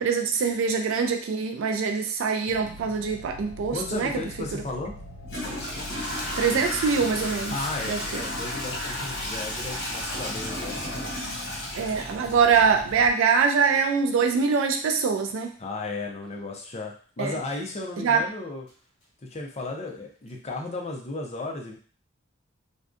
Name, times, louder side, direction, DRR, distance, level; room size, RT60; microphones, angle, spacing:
voice 1, 0.0-4.1 6.4-7.5 7.9-8.2 11.8-15.5 17.2-17.3 18.0-18.2, right 5 dB, 80° right, 4 dB, 0.3 m, -23 dB
sound 1, 2.5-13.1, left 1 dB, 85° left, 0.5 m, -42 dB
voice 2, 3.7-4.9 7.5-11.1 15.6-18.7 19.2-21.8, left 2 dB, 35° left, 1 dB, 0.5 m, -34 dB
Toilet flush / Trickle dribble, 4.4-4.5 5.2-13.0, left 1 dB, 60° left, 0.9 m, -33 dB
2.5 x 2.2 x 2.4 m, 0.41 s
head